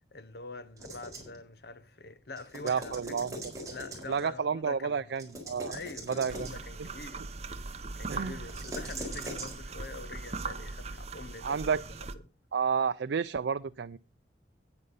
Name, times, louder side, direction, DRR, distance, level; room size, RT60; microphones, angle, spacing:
voice 1, 0.0-3.2 3.7-5.1 5.6-12.2, left 3 dB, 65° left, 1.0 m, -45 dB
sound 1, 0.8-1.4 2.4-4.3 5.2-6.7 8.4-9.5, right 1 dB, 20° right, 4.5 m, -41 dB
voice 2, 2.6-3.3 4.1-5.8 6.2-6.5 8.1-8.3 11.4-11.8 12.5-14.0, right 6 dB, 80° right, 0.4 m, -30 dB
sound 2, 6.3-12.2, right 3 dB, 35° right, 0.8 m, -40 dB
9.8 x 9.6 x 5.3 m
head